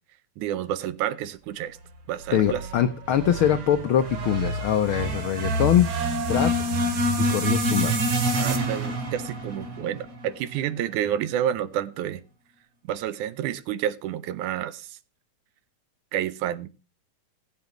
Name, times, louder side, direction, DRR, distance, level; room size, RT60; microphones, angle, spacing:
voice 1, 0.4-1.8 2.1-2.7 8.4-12.2 12.9-15.0 16.1-16.7, right 11 dB, 90° right, 2.3 m, -29 dB
sound 1, 2.2-10.6, right 1 dB, 60° right, 3.0 m, -27 dB
voice 2, 2.3-5.9 6.3-6.7 7.3-8.2, left 10 dB, 90° left, 1.1 m, -23 dB
20.0 x 8.0 x 3.0 m
omnidirectional pair, 3.4 m